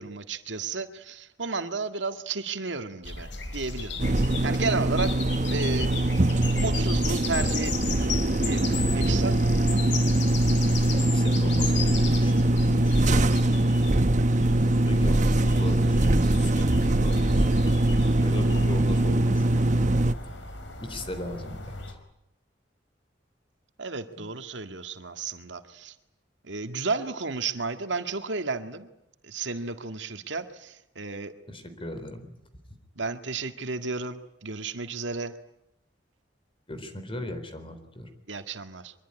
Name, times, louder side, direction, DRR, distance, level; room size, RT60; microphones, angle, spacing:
voice 1, 0.0-3.3 3.5-4.0 4.4-6.2 6.6-9.4 23.8-25.9 26.4-28.9 29.2-31.3 31.7-31.8 33.0-35.3 38.3-38.9, right 4 dB, 90° right, 8 dB, 1.9 m, -33 dB
sound 1, 3.0-21.9, left 4 dB, 90° left, 4.8 m, -37 dB
sound 2, 4.0-20.1, right 1 dB, 45° right, 1.0 m, -22 dB
voice 2, 10.9-13.2 14.6-17.6 18.2-19.7 20.8-21.7 24.2-24.3 31.5-32.3 36.7-38.1, left 1 dB, 30° left, 9 dB, 3.9 m, -38 dB
24.0 x 23.0 x 10.0 m, 0.81 s
head